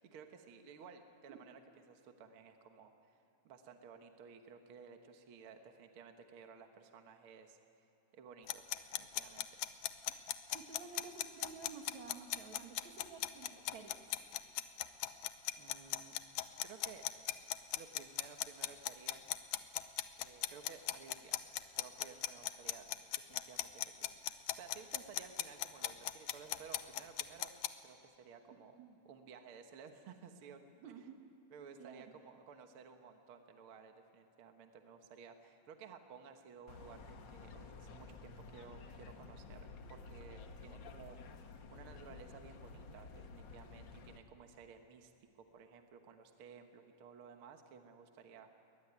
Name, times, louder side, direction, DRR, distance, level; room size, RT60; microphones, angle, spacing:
voice 1, 0.0-1.6 1.9-3.2 3.5-7.6 8.1-8.6 9.0-9.6 15.6-16.2 16.6-17.1 17.8-19.2 20.2-21.5 21.7-27.5 27.8-28.8 29.1-31.0 31.5-48.5, right 6 dB, 55° right, 6 dB, 1.9 m, -56 dB
sound 1, 8.5-27.7, left 14 dB, 85° left, 2.2 m, -38 dB
voice 2, 10.5-14.2 28.5-29.0 30.8-31.2 31.8-32.0, right 5 dB, 70° right, 4 dB, 3.0 m, -52 dB
sound 2, 36.7-44.2, left 4 dB, 55° left, 1.4 m, -52 dB
22.5 x 20.0 x 9.6 m, 2.9 s
omnidirectional pair, 3.4 m